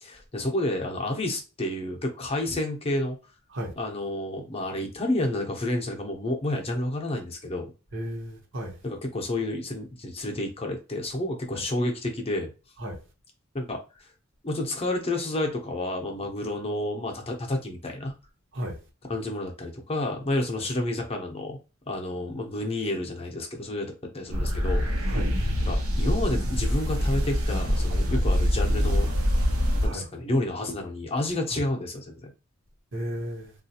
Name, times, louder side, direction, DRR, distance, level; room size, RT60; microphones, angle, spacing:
voice 1, 0.0-3.2 3.8-7.7 8.8-12.5 13.5-14.1 14.4-18.1 19.1-21.6 21.9-23.9 24.1-25.1 25.7-29.1 29.8-32.3, left 1 dB, 30° left, 0.6 m, -30 dB
voice 2, 7.9-8.8 11.5-11.6 12.8-13.0 18.5-18.8 25.1-25.3 28.1-28.2 29.8-30.0 32.9-33.5, equal, 60° right, 1.0 m, -34 dB
sound 1, 24.3-29.9, equal, 85° right, 0.9 m, -24 dB
3.8 x 2.4 x 2.7 m
head